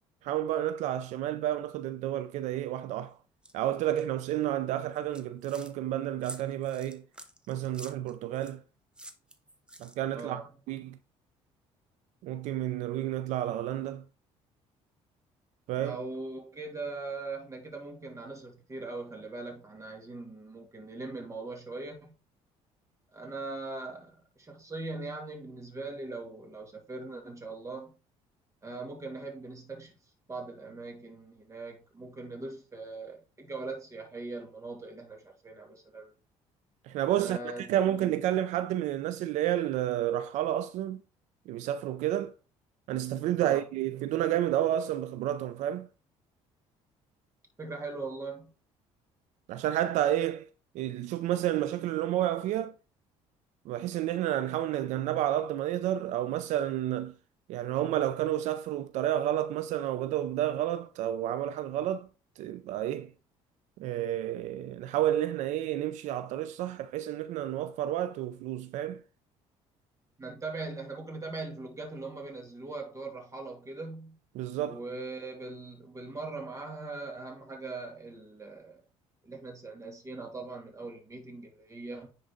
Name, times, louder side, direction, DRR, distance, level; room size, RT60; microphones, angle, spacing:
voice 1, 0.2-3.2 3.5-7.0 7.5-8.6 9.8-10.4 10.7-11.0 12.2-14.0 15.7-16.0 36.8-41.0 41.5-42.3 42.9-45.9 49.5-50.5 50.7-52.7 53.7-57.1 57.5-62.1 62.4-63.1 63.8-69.0 74.3-74.8, right 12 dB, 75° right, 0.4 m, -30 dB
sound 1, 3.4-3.5 4.0-4.3 4.9-5.7 6.2-8.6 9.0-10.2, right 1 dB, 10° right, 0.9 m, -48 dB
voice 2, 10.1-10.5 15.8-22.1 23.1-27.9 28.6-29.9 30.3-36.1 37.2-38.2 43.4-43.7 47.6-48.5 70.2-74.2 74.6-78.8 79.2-82.1, right 3 dB, 25° right, 2.4 m, -40 dB
9.8 x 4.0 x 3.7 m
cardioid pair, 105°, 12 cm